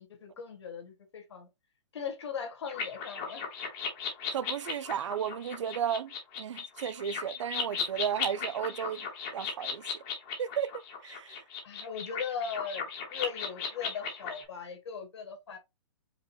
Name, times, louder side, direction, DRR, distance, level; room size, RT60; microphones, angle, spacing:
voice 1, 0.0-1.5 1.9-3.4 11.6-15.6, left 7 dB, 65° left, 1.8 m, -39 dB
sound 1, 2.7-14.4, left 5 dB, 20° left, 1.0 m, -37 dB
voice 2, 4.3-9.0 9.3-9.8 10.4-11.4, right 8 dB, 80° right, 0.5 m, -34 dB
5.1 x 2.2 x 4.4 m
hypercardioid pair, 180°, 15 cm